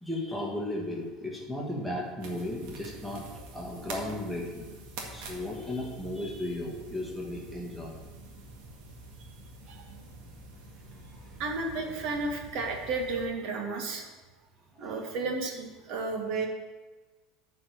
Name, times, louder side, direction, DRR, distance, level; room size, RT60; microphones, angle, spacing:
voice 1, 0.0-3.3 3.5-4.7 5.1-8.0 10.9-11.4 14.8-15.0, left 1 dB, ahead, -2 dB, 1.5 m, -35 dB
sound 1, 2.2-13.3, right 2 dB, 70° right, 1.7 m, -46 dB
voice 2, 11.4-14.1 14.8-16.5, right 3 dB, 50° right, 2 dB, 1.5 m, -33 dB
9.2 x 4.6 x 6.7 m, 1.2 s
cardioid pair, 170°, 0 cm